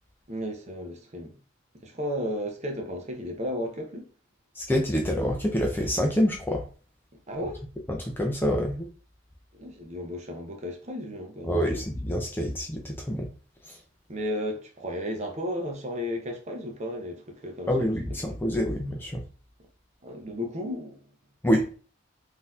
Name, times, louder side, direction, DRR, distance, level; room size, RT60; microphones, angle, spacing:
voice 1, 0.3-1.3 1.7-4.1 7.3-7.6 9.5-11.8 14.1-17.9 20.0-21.0, equal, 35° right, 0.7 m, -34 dB
voice 2, 4.5-6.7 7.9-8.9 11.4-13.3 13.6-13.8 17.7-19.2 21.4-21.7, equal, 10° left, 0.4 m, -26 dB
3.8 x 2.7 x 2.4 m
head